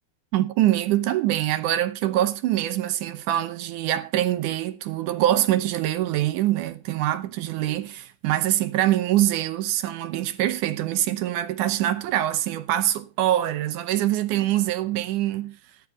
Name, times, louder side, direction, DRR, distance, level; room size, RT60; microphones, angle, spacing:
voice 1, 0.3-15.6, right 13 dB, 75° right, 2.1 m, -24 dB
13.5 x 11.0 x 3.9 m
omnidirectional pair, 4.0 m